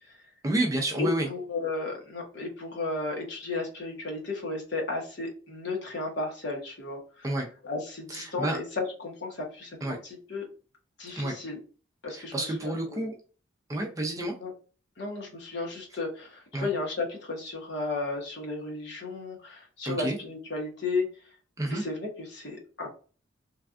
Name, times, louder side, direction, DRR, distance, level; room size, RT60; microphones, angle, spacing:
voice 1, 0.4-1.3 7.2-7.5 8.1-8.6 9.8-10.0 11.2-11.4 12.1-13.1 13.7-14.3 16.5-16.7 19.9-20.2 21.6-21.8, right 1 dB, 15° right, 1 dB, 0.4 m, -29 dB
voice 2, 1.0-7.3 7.6-10.4 11.0-11.6 12.0-13.0 14.4-14.5 15.0-21.1 21.7-22.9, left 3 dB, 55° left, 0 dB, 1.0 m, -34 dB
3.2 x 2.3 x 2.4 m, 0.38 s
head